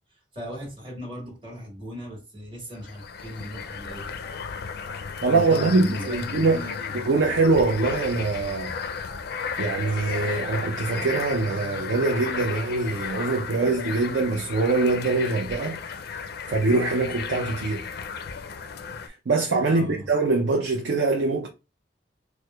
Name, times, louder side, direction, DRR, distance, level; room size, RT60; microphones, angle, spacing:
voice 1, 0.1-4.1 5.3-7.0 19.7-20.0, equal, 30° right, 1.4 m, -37 dB
sound 1, 2.8-19.1, left 6 dB, 60° left, 0.4 m, -34 dB
voice 2, 5.2-6.6 7.1-8.7 9.6-15.8 16.5-17.8 19.1-21.5, right 3 dB, 70° right, 0.5 m, -23 dB
4.5 x 2.1 x 2.2 m
head